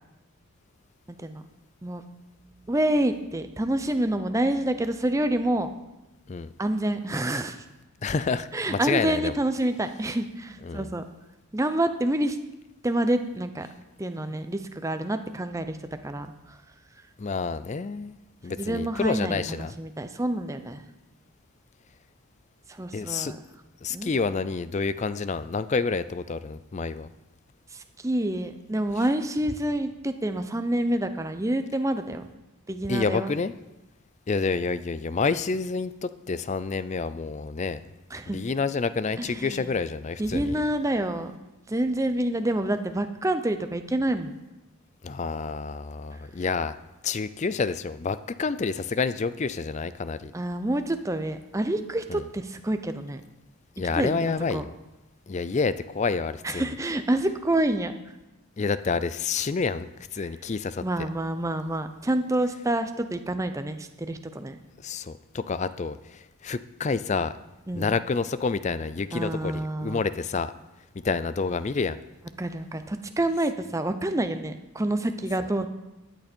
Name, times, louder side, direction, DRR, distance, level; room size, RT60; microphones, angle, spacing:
voice 1, 2.7-5.7 6.6-7.6 8.5-11.0 11.5-12.4 12.8-13.7 14.0-15.8 16.0-16.3 18.5-20.8 22.7-23.4 23.9-24.1 27.7-32.2 32.7-33.3 38.1-38.4 39.2-39.7 40.2-41.3 41.7-44.4 50.3-53.2 54.0-54.2 54.5-54.7 56.4-57.9 60.8-64.6 67.7-67.9 69.1-70.0 72.4-75.7, right 1 dB, 15° right, 8 dB, 0.6 m, -27 dB
voice 2, 8.0-9.3 10.6-10.9 17.2-18.2 18.4-19.7 22.9-23.3 23.8-27.1 32.9-33.5 34.3-37.8 38.3-40.6 45.0-46.8 47.0-50.3 52.1-52.3 53.8-54.7 55.3-56.7 58.6-60.8 64.8-67.3 67.7-70.5 71.0-72.0, left 4 dB, 30° left, 14 dB, 0.4 m, -28 dB
13.5 x 9.1 x 4.4 m, 1.0 s
head